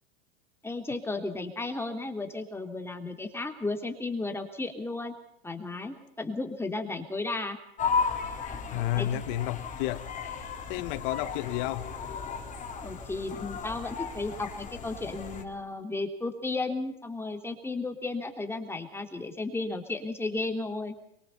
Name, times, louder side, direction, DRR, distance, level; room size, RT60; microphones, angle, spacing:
voice 1, 0.6-5.1 5.4-7.6 9.0-9.2 12.8-21.0, left 3 dB, 10° left, 3.4 m, -34 dB
sound 1, 7.8-15.4, left 5 dB, 25° left, 4.0 m, -35 dB
voice 2, 8.7-10.1 10.7-12.0, left 14 dB, 60° left, 1.5 m, -31 dB
23.5 x 23.0 x 5.6 m
supercardioid pair, 120°, 30 cm